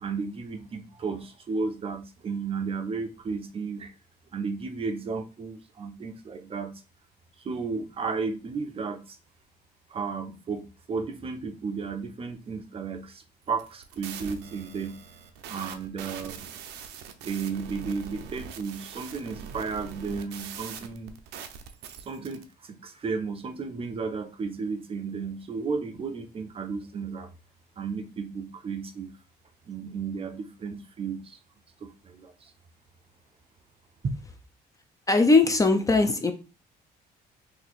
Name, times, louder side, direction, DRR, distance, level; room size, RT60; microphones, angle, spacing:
voice 1, 0.0-3.9 4.3-6.8 7.4-9.2 9.9-15.0 15.5-16.5 17.2-21.1 22.1-27.3 27.8-29.1 29.7-31.4 31.8-32.5 34.0-34.1, right 5 dB, 35° right, 0.5 m, -33 dB
sound 1, 13.5-22.4, right 7 dB, 85° right, 0.6 m, -42 dB
voice 2, 35.1-36.3, left 3 dB, 20° left, 0.5 m, -20 dB
2.8 x 2.7 x 4.0 m
cardioid pair, 110°, 17 cm